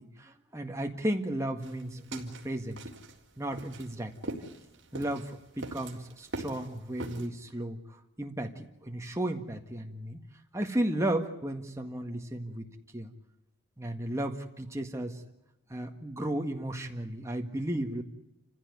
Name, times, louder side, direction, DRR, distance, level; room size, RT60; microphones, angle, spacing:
voice 1, 0.0-2.8 3.4-4.2 4.9-5.3 5.6-7.8 8.2-10.2 10.5-12.7 12.9-13.1 13.8-15.2 15.7-18.0, right 1 dB, 15° right, 3 dB, 1.8 m, -34 dB
sound 1, 1.6-7.3, right 2 dB, 60° right, 3.8 m, -42 dB
28.5 x 16.0 x 9.7 m, 0.93 s
head